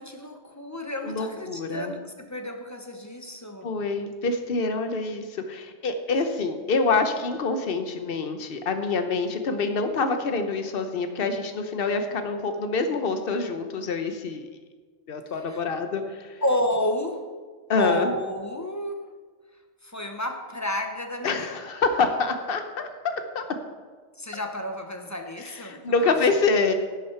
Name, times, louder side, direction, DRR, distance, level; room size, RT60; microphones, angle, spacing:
voice 1, 0.0-3.7 15.3-15.7 16.4-17.2 17.8-19.0 19.8-21.6 24.2-26.2, left 1 dB, 15° left, 4 dB, 0.7 m, -31 dB
voice 2, 1.0-1.9 3.6-14.5 15.1-16.4 17.7-18.1 21.2-22.9 23.3-23.4 24.3-24.4 25.4-26.7, left 4 dB, 50° left, 7 dB, 1.0 m, -26 dB
11.0 x 8.6 x 4.5 m, 1.5 s
omnidirectional pair, 1.3 m